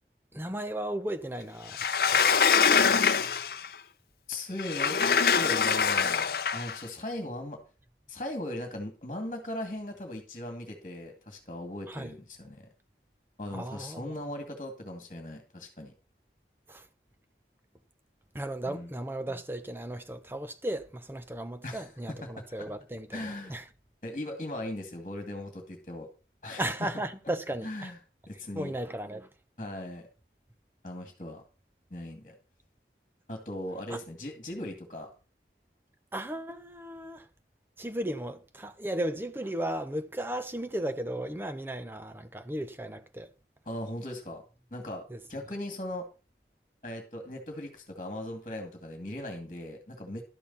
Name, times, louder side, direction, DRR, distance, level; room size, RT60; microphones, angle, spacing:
voice 1, 0.3-1.8 2.1-2.2 11.9-12.1 13.5-14.1 16.7-16.8 18.3-23.6 26.6-27.9 28.5-29.3 33.9-34.0 36.1-37.2 37.8-43.3 45.1-45.2, right 1 dB, 10° right, 0.8 m, -35 dB
Sliding door, 1.7-3.7 4.6-6.8, left 6 dB, 55° left, 0.7 m, -24 dB
voice 2, 4.3-5.0 5.3-7.6 8.1-12.7 13.4-15.9 18.6-18.9 21.6-22.3 22.6-22.7 23.1-23.6 24.0-26.1 26.4-26.9 27.6-28.0 28.3-28.7 29.6-30.1 30.8-31.4 31.9-32.3 33.3-35.1 43.7-44.4 44.7-45.0 45.3-46.0 46.8-50.2, left 1 dB, 35° left, 2.2 m, -38 dB
12.0 x 6.9 x 5.6 m
head